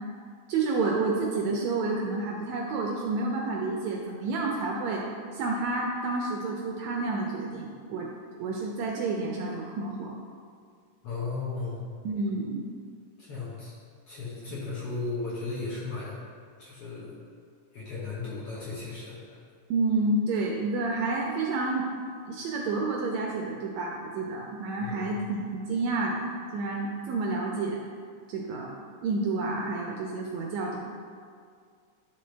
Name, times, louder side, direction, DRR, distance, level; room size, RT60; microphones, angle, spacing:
voice 1, 0.5-5.1 5.3-8.1 8.4-10.1 12.0-12.6 19.7-21.9 22.2-26.2 26.5-27.8 28.3-28.7 29.0-30.8, right 3 dB, 80° right, -1 dB, 1.7 m, -29 dB
voice 2, 11.0-11.8 13.2-13.7 14.1-16.2 16.6-17.1 17.7-19.2 24.8-25.1, left 3 dB, 55° left, -8 dB, 1.8 m, -35 dB
10.5 x 3.8 x 3.3 m, 2.1 s
omnidirectional pair, 3.6 m